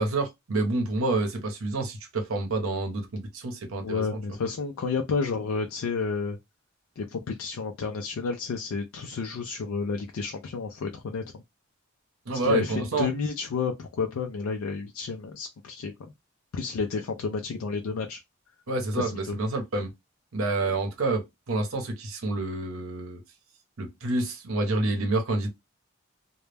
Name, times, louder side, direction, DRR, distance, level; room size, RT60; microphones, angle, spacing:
voice 1, 0.0-4.2 12.3-13.1 18.7-19.9 20.3-23.2 23.8-25.5, right 2 dB, 80° right, 0.7 m, -28 dB
voice 2, 3.8-6.4 7.0-11.2 12.3-15.9 16.5-18.2 19.0-19.4 20.6-20.7, left 5 dB, 80° left, 0.4 m, -31 dB
2.1 x 2.0 x 3.2 m
head